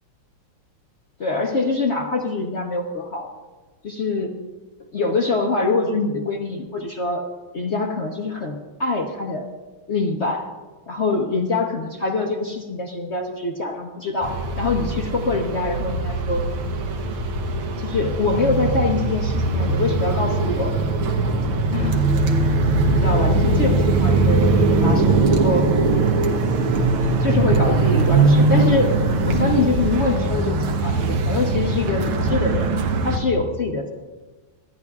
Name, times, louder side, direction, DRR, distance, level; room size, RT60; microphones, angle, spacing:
voice 1, 1.2-3.3 3.8-4.3 4.9-7.3 7.5-9.5 9.9-10.5 10.9-16.5 17.8-20.7 21.7-22.0 22.4-22.5 22.9-25.7 27.2-32.7 33.0-33.9, left 3 dB, 65° left, 0 dB, 0.6 m, -24 dB
sound 1, 14.2-33.2, right 3 dB, 80° right, 1.9 m, -20 dB
26.0 x 9.8 x 2.4 m, 1.3 s
omnidirectional pair, 2.4 m